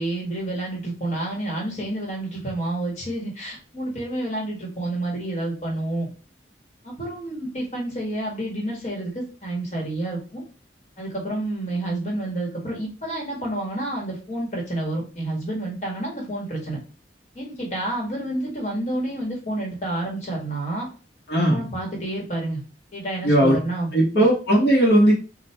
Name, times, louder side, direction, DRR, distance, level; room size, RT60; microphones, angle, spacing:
voice 1, 0.0-6.1 6.8-10.4 11.0-16.8 17.3-20.9 21.5-22.6 22.9-24.3, right 1 dB, 35° left, -1 dB, 1.4 m, -29 dB
voice 2, 21.3-21.6 23.2-23.6 23.9-25.1, right 1 dB, 60° left, -4 dB, 1.1 m, -17 dB
4.3 x 2.4 x 3.3 m, 0.33 s
head